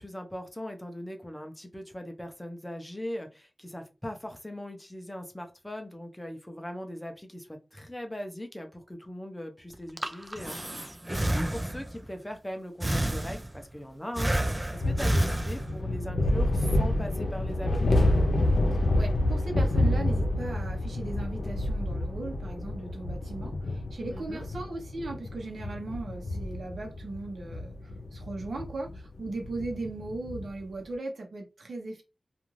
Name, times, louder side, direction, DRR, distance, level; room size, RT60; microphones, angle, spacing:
voice 1, 0.0-17.9 24.1-24.5, left 1 dB, 10° left, 0.6 m, -40 dB
Breathing, 9.7-12.0 12.8-13.7 14.2-16.0, right 1 dB, 20° right, 0.3 m, -30 dB
sound 1, 14.7-30.6, left 1 dB, 85° left, 0.6 m, -29 dB
voice 2, 18.7-32.0, right 2 dB, 80° right, 0.9 m, -38 dB
2.5 x 2.4 x 3.1 m
wide cardioid pair, 90°, 0 cm